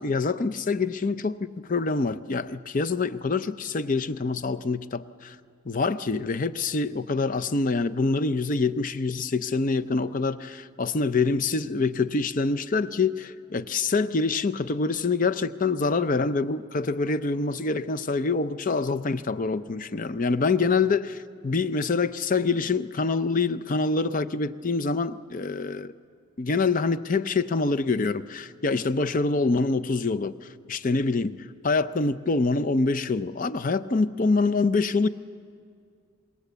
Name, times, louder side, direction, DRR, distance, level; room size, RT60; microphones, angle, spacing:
voice 1, 0.0-5.4 5.7-25.9 26.4-30.4 30.7-35.1, left 3 dB, 40° left, 0.5 m, -25 dB
26.5 x 21.5 x 8.0 m
head